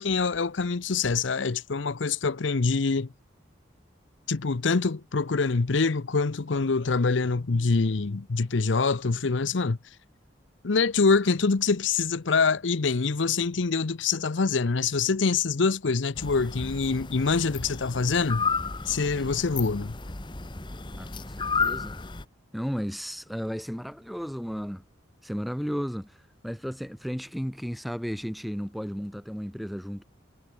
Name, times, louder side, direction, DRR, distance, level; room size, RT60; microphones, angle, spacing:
voice 1, 0.0-3.1 4.3-9.8 10.6-18.4 18.9-20.0, left 4 dB, 80° left, 0.7 m, -25 dB
sound 1, 16.2-22.2, left 5 dB, 25° left, 1.1 m, -32 dB
voice 2, 21.0-22.0 22.5-24.8 25.2-26.2 26.4-30.0, equal, ahead, 1.6 m, -34 dB
head